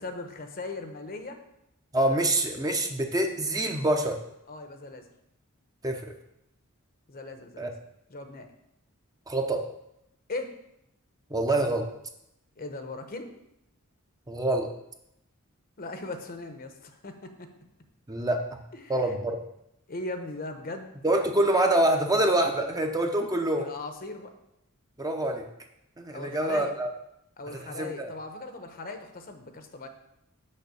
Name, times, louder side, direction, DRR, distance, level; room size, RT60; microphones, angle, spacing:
voice 1, 0.0-1.4 4.5-5.1 7.1-7.7 8.1-8.5 10.3-10.6 12.6-13.3 15.8-17.5 18.7-19.1 19.9-20.9 23.6-24.3 26.1-26.7 27.4-29.9, left 2 dB, 45° left, 6 dB, 0.9 m, -38 dB
voice 2, 1.9-4.2 5.8-6.0 7.6-7.7 9.3-9.6 11.3-11.9 14.3-14.7 18.1-18.6 18.9-19.4 21.0-23.7 25.0-25.4 26.0-26.9 27.8-28.1, right 1 dB, 15° right, 3 dB, 0.8 m, -25 dB
6.6 x 5.6 x 6.9 m, 0.81 s
head